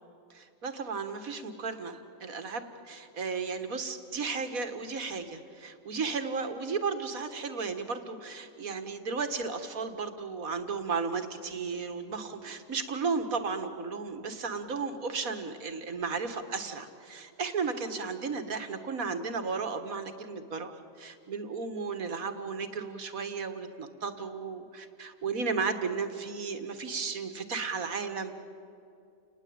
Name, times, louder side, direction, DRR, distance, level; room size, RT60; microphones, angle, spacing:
voice 1, 0.3-20.7 21.0-28.4, right 5 dB, 90° right, 8 dB, 2.2 m, -34 dB
30.0 x 19.5 x 8.8 m, 2.6 s
omnidirectional pair, 1.4 m